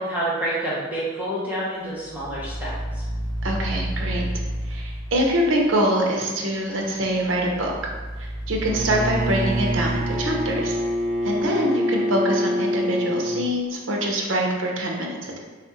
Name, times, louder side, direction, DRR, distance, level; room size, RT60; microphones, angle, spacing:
voice 1, 0.0-3.0, right 1 dB, 10° right, -9 dB, 0.8 m, -28 dB
sound 1, 2.0-5.7 7.1-11.4, equal, 20° left, 0.5 m, -32 dB
voice 2, 3.4-4.2 4.7-7.7 8.2-10.8 11.2-15.4, right 1 dB, 80° right, 0 dB, 0.7 m, -24 dB
Bowed string instrument, 8.6-13.4, equal, 45° right, 0.4 m, -25 dB
3.5 x 2.5 x 4.2 m, 1.3 s
head